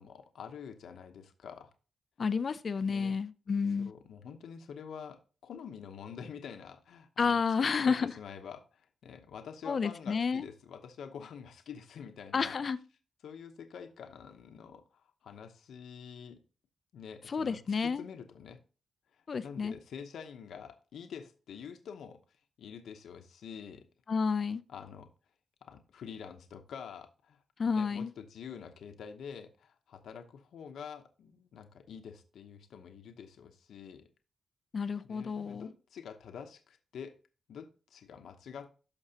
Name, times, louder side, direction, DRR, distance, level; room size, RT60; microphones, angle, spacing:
voice 1, 0.0-1.7 2.9-3.1 3.8-7.4 7.7-12.6 13.2-16.4 16.9-18.6 19.1-22.2 22.6-23.9 24.7-25.1 25.6-34.1 35.0-37.2 37.5-38.7, left 7 dB, 90° left, 0.8 m, -47 dB
voice 2, 2.2-3.9 7.2-8.1 9.6-10.5 12.3-12.8 17.3-18.0 19.3-19.8 24.1-24.6 27.6-28.1 34.7-35.7, left 5 dB, 35° left, 0.4 m, -30 dB
12.0 x 6.0 x 2.8 m
wide cardioid pair, 175°, 0 cm